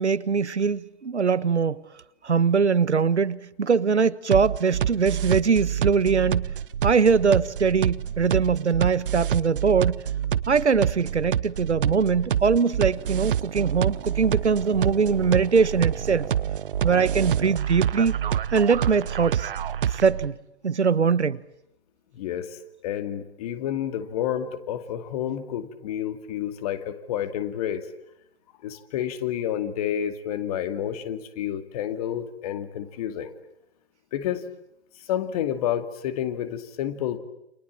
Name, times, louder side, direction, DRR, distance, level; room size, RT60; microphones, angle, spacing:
voice 1, 0.0-1.8 2.2-6.5 6.8-10.0 10.5-16.3 16.8-18.1 18.5-19.5 19.9-20.4 20.6-21.4, right 5 dB, 85° right, 1.3 m, -22 dB
sound 1, 4.3-20.3, right 9 dB, 50° right, 1.0 m, -27 dB
voice 2, 22.1-27.9 28.6-33.3 34.1-34.4 35.0-37.2, left 10 dB, 35° left, 2.4 m, -29 dB
29.0 x 27.0 x 7.6 m
figure-of-eight pair, 140°, 34 cm